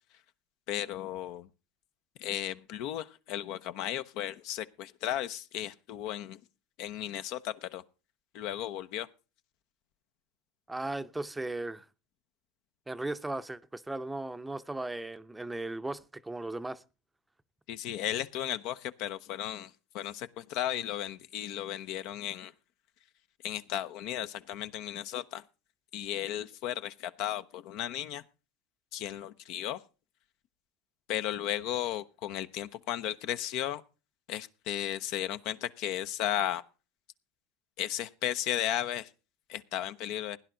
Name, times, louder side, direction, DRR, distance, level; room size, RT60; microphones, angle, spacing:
voice 1, 0.7-1.5 2.2-6.4 6.8-7.8 8.3-9.1 17.7-22.5 23.4-25.4 25.9-28.2 28.9-29.8 31.1-33.8 34.3-36.6 37.8-39.1 39.5-40.4, left 11 dB, 60° left, 0.8 m, -35 dB
voice 2, 10.7-11.9 12.9-16.8, right 2 dB, 10° right, 0.7 m, -37 dB
17.0 x 10.5 x 3.9 m
supercardioid pair, 105°, 0 cm